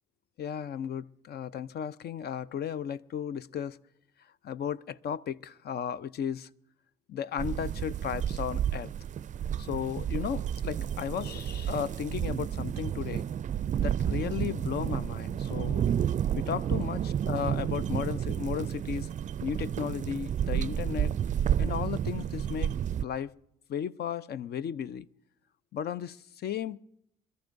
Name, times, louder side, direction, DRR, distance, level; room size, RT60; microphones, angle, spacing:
voice 1, 0.4-3.8 4.4-6.5 7.1-8.9 9.6-13.2 13.8-15.8 16.3-19.1 19.4-21.1 21.6-23.3 23.7-25.1 25.7-26.8, left 8 dB, 55° left, 0.6 m, -35 dB
sound 1, 7.4-23.0, right 9 dB, 40° right, 0.4 m, -31 dB
26.5 x 13.5 x 2.7 m
hypercardioid pair, 50°, 20 cm